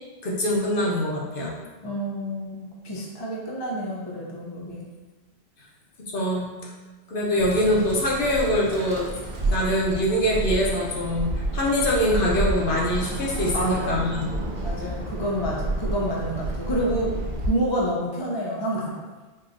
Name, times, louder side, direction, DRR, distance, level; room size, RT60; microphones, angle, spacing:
voice 1, 0.2-1.6 6.1-6.5 7.1-9.1 9.4-14.3, equal, 55° left, -4 dB, 0.9 m, -24 dB
voice 2, 1.8-4.8 13.5-17.2 17.5-19.0, equal, 35° left, -3 dB, 0.4 m, -29 dB
Bird, 7.4-17.5, right 2 dB, 55° right, 0.7 m, -30 dB
4.5 x 2.8 x 2.5 m, 1.2 s
omnidirectional pair, 1.2 m